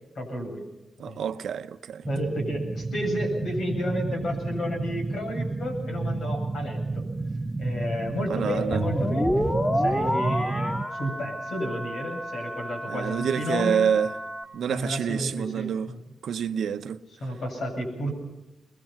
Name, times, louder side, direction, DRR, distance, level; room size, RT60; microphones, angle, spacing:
voice 1, 0.1-0.7 1.1-1.4 2.1-7.1 7.6-9.5 9.7-13.8 14.7-16.0 17.2-18.1, equal, 80° left, 7.8 m, -31 dB
voice 2, 1.0-2.0 8.3-8.8 12.9-14.1 14.5-15.9 16.2-17.0, right 7 dB, 90° right, 0.8 m, -27 dB
sound 1, 2.0-10.8, right 3 dB, 30° right, 1.0 m, -31 dB
sound 2, 8.7-14.4, equal, 25° left, 3.8 m, -29 dB
23.5 x 21.5 x 5.8 m
cardioid pair, 90°, 0 cm